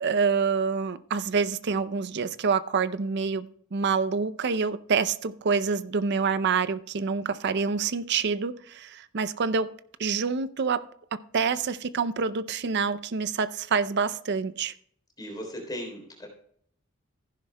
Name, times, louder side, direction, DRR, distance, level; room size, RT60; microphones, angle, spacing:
voice 1, 0.0-9.7 10.0-10.8 11.1-14.7, right 5 dB, 55° right, 14 dB, 0.5 m, -27 dB
voice 2, 15.2-16.3, equal, 20° left, 1 dB, 3.4 m, -37 dB
15.5 x 10.5 x 2.2 m, 0.65 s
head